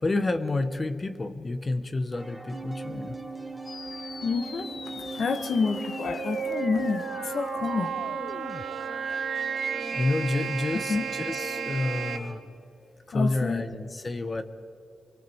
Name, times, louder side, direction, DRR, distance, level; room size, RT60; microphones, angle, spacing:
voice 1, 0.0-3.2 9.9-12.4 13.1-14.4, left 2 dB, 35° left, 10 dB, 1.3 m, -29 dB
sound 1, 2.1-12.4, equal, ahead, 2.4 m, -43 dB
sound 2, 2.5-12.2, right 7 dB, 70° right, 1.9 m, -34 dB
sound 3, 3.7-8.7, left 4 dB, 50° left, 0.7 m, -42 dB
voice 2, 4.2-7.9 10.9-11.1 13.1-13.7, left 4 dB, 70° left, 9 dB, 1.7 m, -29 dB
30.0 x 24.5 x 4.7 m, 2.7 s
cardioid pair, 70°, 0 cm